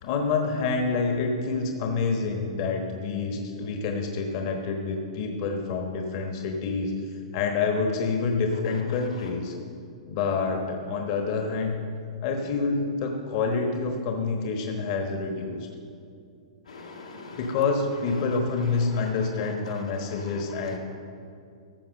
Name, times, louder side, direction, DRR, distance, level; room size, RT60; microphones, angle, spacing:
voice 1, 0.0-9.5 10.1-11.7 12.2-15.7 17.4-20.8, left 4 dB, 50° left, 3 dB, 1.2 m, -27 dB
voice 2, 16.7-17.5 19.0-19.1 19.7-19.8 20.1-20.8, left 3 dB, 90° left, -1 dB, 2.1 m, -43 dB
14.0 x 5.7 x 6.5 m, 2.5 s
hypercardioid pair, 115°, 3 cm